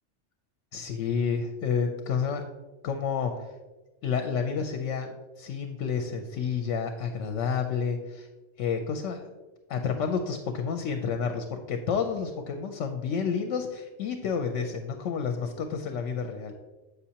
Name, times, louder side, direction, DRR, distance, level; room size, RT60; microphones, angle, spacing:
voice 1, 0.7-2.4 2.8-3.4 4.0-8.3 8.6-9.3 9.7-16.5, left 6 dB, 85° left, 5 dB, 0.9 m, -30 dB
8.1 x 5.5 x 2.8 m, 1.2 s
omnidirectional pair, 1.2 m